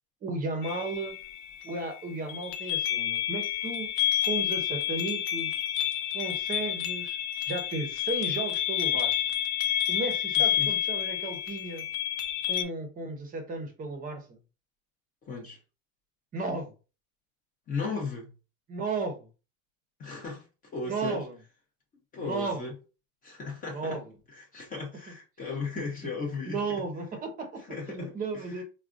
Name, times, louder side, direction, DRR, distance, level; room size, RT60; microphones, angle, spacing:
voice 1, 0.2-1.2 1.6-3.9 4.2-5.6 6.1-7.2 7.4-9.1 9.9-11.9 12.5-14.4 16.3-16.7 18.7-19.3 20.8-21.4 22.2-22.7 23.7-24.1 26.5-27.6 27.9-28.6, right 3 dB, 20° right, 0.7 m, -34 dB
sound 1, 0.6-12.6, left 11 dB, 75° left, 0.8 m, -30 dB
voice 2, 10.4-10.7 15.2-15.6 17.7-18.3 20.0-20.5 20.7-21.2 22.1-22.7 23.2-24.0 24.3-26.8 27.6-28.6, left 4 dB, 20° left, 0.6 m, -36 dB
4.7 x 2.2 x 2.5 m
cardioid pair, 165°, 40 cm